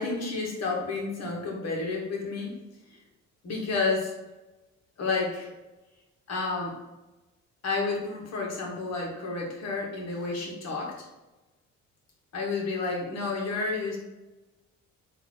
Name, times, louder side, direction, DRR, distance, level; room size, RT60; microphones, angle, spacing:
voice 1, 0.0-2.5 3.4-4.1 5.0-5.5 6.3-6.7 7.6-11.1 12.3-14.0, left 3 dB, 60° left, -1 dB, 1.5 m, -30 dB
4.0 x 2.8 x 4.3 m, 1.1 s
cardioid pair, 90°, 30 cm